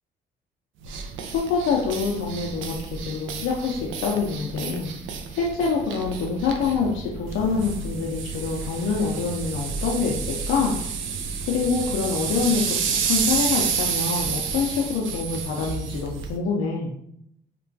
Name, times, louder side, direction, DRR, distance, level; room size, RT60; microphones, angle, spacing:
sound 1, 0.8-16.4, right 6 dB, 80° right, 0.4 m, -30 dB
voice 1, 1.3-4.9 5.4-10.8 11.5-16.9, left 5 dB, 85° left, -3 dB, 0.5 m, -26 dB
2.9 x 2.2 x 2.6 m, 0.73 s
cardioid pair, 90°, 20 cm